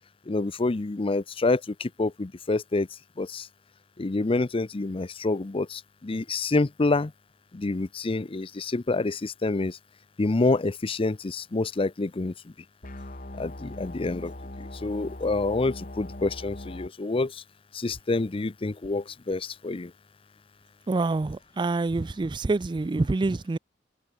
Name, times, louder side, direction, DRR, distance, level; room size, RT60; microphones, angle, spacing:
voice 1, 0.3-2.9 3.2-3.5 4.0-7.1 7.5-9.8 10.2-12.3 13.4-14.3 14.6-17.4 17.7-19.9, left 3 dB, 30° left, 0.6 m, -27 dB
sound 1, 12.8-16.9, left 1 dB, 45° left, 2.5 m, -40 dB
voice 2, 20.9-23.6, right 3 dB, 25° right, 0.4 m, -26 dB
head